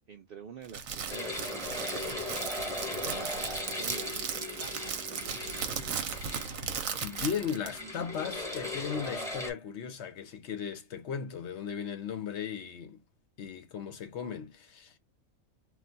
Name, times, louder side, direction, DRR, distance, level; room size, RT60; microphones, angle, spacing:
voice 1, 0.1-5.5, right 7 dB, 60° right, 0.6 m, -49 dB
Crackle, 0.6-7.8, right 7 dB, 80° right, 1.0 m, -37 dB
sound 1, 1.1-9.5, left 2 dB, 5° left, 0.9 m, -38 dB
voice 2, 6.2-6.5 7.0-13.0 13.4-15.0, left 7 dB, 65° left, 0.9 m, -37 dB
2.4 x 2.2 x 3.8 m
omnidirectional pair, 1.4 m